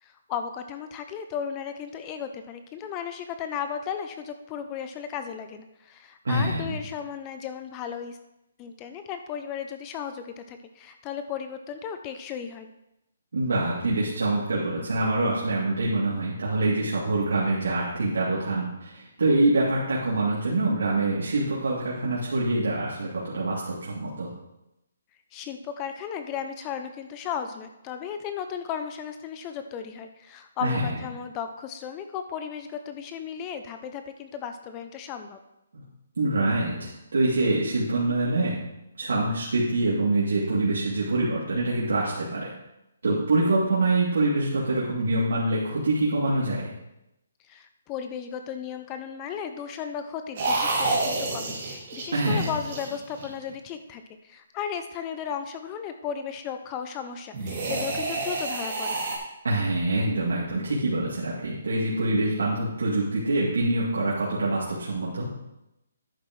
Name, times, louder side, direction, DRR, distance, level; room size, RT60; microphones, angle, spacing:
voice 1, 0.0-8.2 8.6-12.7 25.3-35.4 47.5-59.0, left 8 dB, 15° left, 8 dB, 0.4 m, -35 dB
voice 2, 6.2-6.8 13.3-24.3 30.6-31.0 35.7-35.8 36.2-38.6 39.0-42.5 43.0-46.7 52.1-52.5 59.4-65.3, right 2 dB, 90° right, -7 dB, 2.6 m, -25 dB
sound 1, 50.4-53.5 57.3-59.2, right 2 dB, 30° right, 2.1 m, -29 dB
10.5 x 8.8 x 3.1 m, 0.89 s
hypercardioid pair, 175°, 0 cm